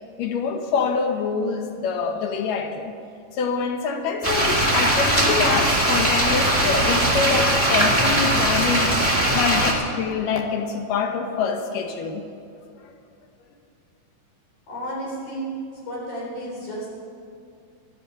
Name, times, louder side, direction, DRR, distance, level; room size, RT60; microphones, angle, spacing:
voice 1, 0.2-2.9 3.3-12.2, left 5 dB, 75° left, 5 dB, 2.4 m, -25 dB
sound 1, 4.2-9.7, right 1 dB, 5° left, 1.1 m, -20 dB
voice 2, 14.7-15.5 15.9-16.9, equal, 55° left, -5 dB, 5.3 m, -32 dB
13.0 x 13.0 x 6.6 m, 2.5 s
omnidirectional pair, 4.0 m